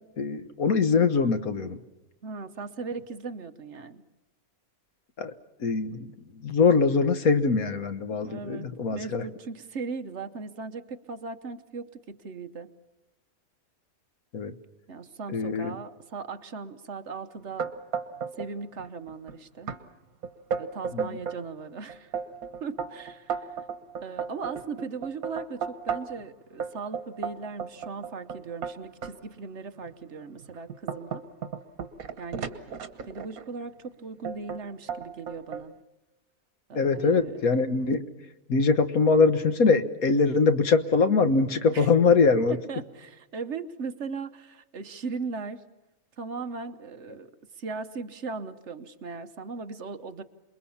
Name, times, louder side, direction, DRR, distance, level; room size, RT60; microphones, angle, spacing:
voice 1, 0.2-1.8 5.2-5.3 5.6-9.2 14.3-14.5 15.3-15.8 20.9-21.1 36.7-38.0 38.5-42.6, left 4 dB, 80° left, 10 dB, 1.7 m, -23 dB
voice 2, 2.2-4.0 8.2-12.7 14.9-17.7 18.4-19.7 20.6-22.2 22.6-23.6 24.0-31.2 32.2-32.5 33.0-35.7 36.7-37.3 41.7-41.9 42.5-45.6 46.2-47.3 47.6-50.2, right 4 dB, 55° right, 10 dB, 1.2 m, -38 dB
sound 1, 17.6-18.5 18.8-19.3 19.7-19.8 20.2-21.4 21.9-26.2 26.6-29.1 29.8-29.9 30.4-33.5 34.2-34.6 34.9-35.7, right 6 dB, 80° right, 1.7 m, -34 dB
28.0 x 21.5 x 7.2 m, 1.0 s
omnidirectional pair, 1.5 m